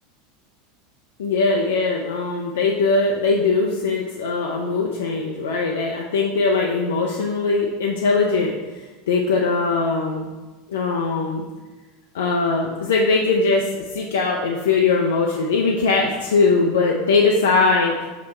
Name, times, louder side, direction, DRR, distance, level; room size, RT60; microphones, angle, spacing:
voice 1, 1.2-10.3 10.7-11.4 12.1-17.9, left 4 dB, 70° left, -1 dB, 0.4 m, -21 dB
6.1 x 2.1 x 4.1 m, 1.2 s
figure-of-eight pair, 80°, 0 cm